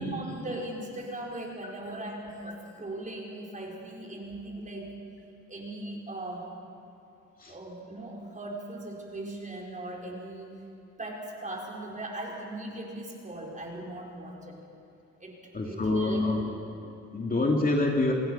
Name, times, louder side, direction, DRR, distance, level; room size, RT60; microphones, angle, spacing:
voice 1, 0.0-4.9 5.5-6.5 7.5-10.5 11.0-14.6 15.2-16.3, right 1 dB, 25° right, -2 dB, 5.1 m, -39 dB
voice 2, 15.5-16.4 16.8-18.1, left 2 dB, 30° left, 0 dB, 2.6 m, -27 dB
29.0 x 19.0 x 5.7 m, 2.6 s
cardioid pair, 90°, 30 cm